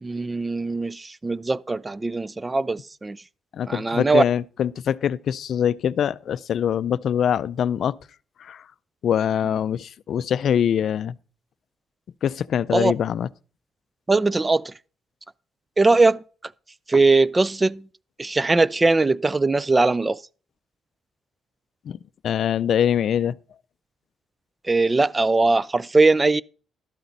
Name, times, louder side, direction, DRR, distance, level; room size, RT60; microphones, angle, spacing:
voice 1, 0.0-3.2 3.7-4.2 12.7-12.9 14.1-14.7 15.8-16.5 16.9-17.9 18.2-20.2 24.6-26.4, right 3 dB, 20° right, 0.4 m, -20 dB
voice 2, 3.5-8.0 8.4-8.6 9.0-11.1 12.2-13.3 21.9-22.0 22.2-23.3, left 9 dB, 65° left, 0.4 m, -23 dB
12.5 x 8.6 x 4.0 m
cardioid pair, 90°, 0 cm